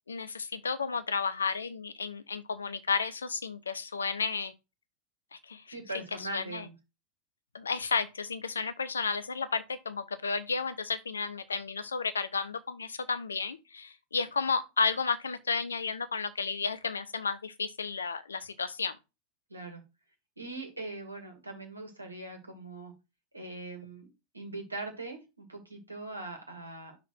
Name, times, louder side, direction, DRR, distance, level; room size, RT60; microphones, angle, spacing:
voice 1, 0.1-4.5 5.3-5.7 6.2-6.7 7.5-19.0, left 5 dB, 75° left, 0.7 m, -32 dB
voice 2, 5.7-6.7 19.5-19.8 20.4-22.9 23.3-24.1 24.3-27.0, right 2 dB, 80° right, 2.1 m, -41 dB
6.0 x 3.7 x 6.1 m
figure-of-eight pair, 90°, 0 cm